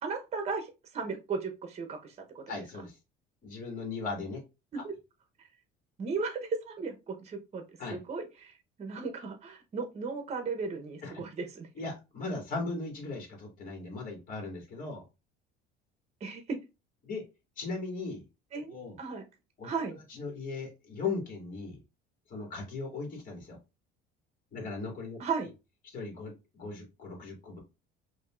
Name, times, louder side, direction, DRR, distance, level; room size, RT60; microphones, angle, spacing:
voice 1, 0.0-2.4 4.7-4.9 6.0-7.6 7.9-8.5 8.8-11.7 16.2-16.6 18.5-19.2 19.6-19.9 25.2-25.5, right 4 dB, 30° right, 1.0 m, -35 dB
voice 2, 2.5-3.0 3.4-4.4 4.8-4.9 7.8-8.0 11.0-11.1 11.8-15.0 17.0-17.2 17.6-18.2 18.7-19.0 19.6-21.8 22.3-23.6 24.5-25.2 25.8-27.6, left 3 dB, 40° left, 2.4 m, -38 dB
5.3 x 2.9 x 2.5 m
cardioid pair, 130°, 21 cm